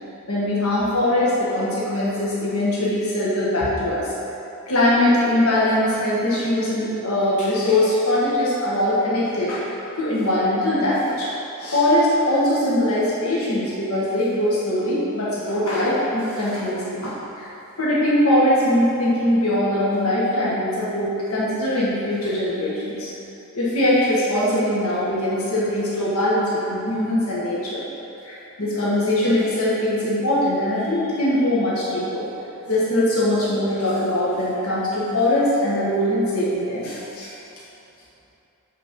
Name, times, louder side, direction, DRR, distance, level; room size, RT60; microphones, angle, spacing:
voice 1, 0.3-4.1 4.7-11.3 11.6-17.5 17.8-23.1 23.5-27.8 28.2-32.3 32.6-37.3, left 1 dB, 85° left, -8 dB, 1.6 m, -21 dB
8.4 x 4.3 x 5.3 m, 2.9 s
head